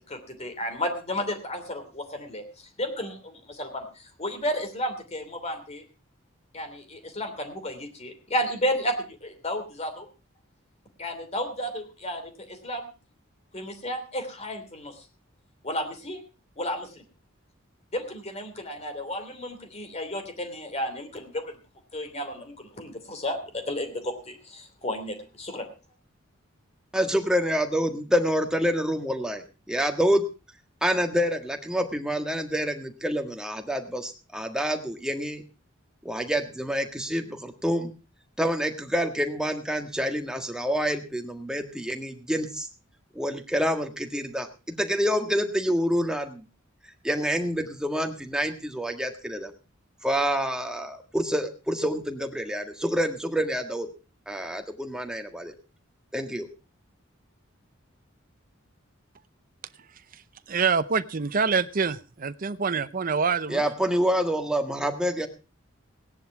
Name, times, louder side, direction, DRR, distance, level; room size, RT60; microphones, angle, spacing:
voice 1, 0.1-5.8 6.5-10.1 11.0-12.9 13.5-15.1 15.6-16.2 16.6-17.0 17.9-21.6 21.9-25.7, equal, 30° left, 6 dB, 3.0 m, -32 dB
voice 2, 26.9-30.2 30.8-35.4 36.0-37.9 38.4-42.7 43.1-46.4 47.0-49.5 50.0-53.9 54.3-55.5 56.1-56.5 63.5-65.3, equal, 5° right, 5 dB, 1.6 m, -27 dB
voice 3, 60.1-63.6, right 5 dB, 45° right, 12 dB, 0.7 m, -26 dB
17.0 x 10.5 x 4.7 m, 0.34 s
head